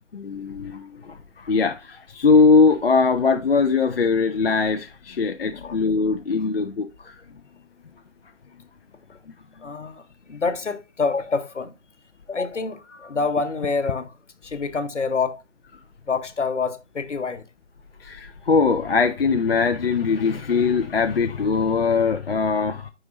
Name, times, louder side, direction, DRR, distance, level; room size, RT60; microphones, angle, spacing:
voice 1, 0.1-7.2 9.3-9.4 18.0-22.9, left 4 dB, 55° left, 0.5 m, -21 dB
voice 2, 9.6-10.0 10.3-11.7 12.3-14.1 14.4-15.4 16.1-17.4, left 4 dB, 70° left, 1.1 m, -26 dB
9.2 x 5.0 x 2.6 m
figure-of-eight pair, 155°, 37 cm